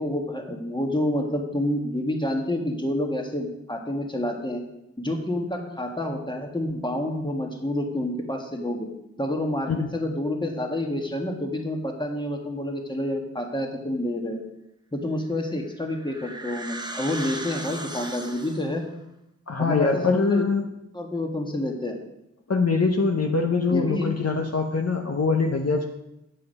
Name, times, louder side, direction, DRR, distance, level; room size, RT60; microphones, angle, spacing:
voice 1, 0.0-4.6 5.0-8.9 9.2-14.4 14.9-18.8 19.6-20.4 20.9-22.0 23.7-24.1, left 1 dB, 15° left, 2 dB, 1.5 m, -28 dB
sound 1, 15.4-18.8, right 1 dB, 15° right, 0.8 m, -37 dB
voice 2, 19.5-20.6 22.5-25.9, left 4 dB, 55° left, 3 dB, 0.9 m, -23 dB
8.4 x 7.7 x 5.4 m, 0.87 s
wide cardioid pair, 65°, 30 cm